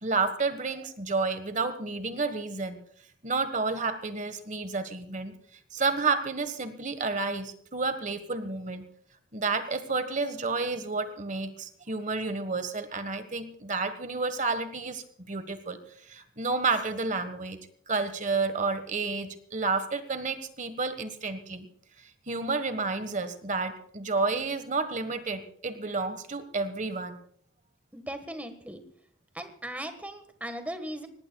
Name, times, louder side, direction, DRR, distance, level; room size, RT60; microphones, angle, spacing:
voice 1, 0.0-2.8 3.2-5.3 5.7-8.8 9.3-15.8 16.1-17.6 17.9-21.7 22.3-27.2, right 4 dB, 35° right, 10 dB, 1.4 m, -30 dB
voice 2, 27.9-28.8 29.3-31.1, right 1 dB, 5° right, 8 dB, 1.5 m, -38 dB
25.0 x 19.0 x 2.3 m, 0.64 s
head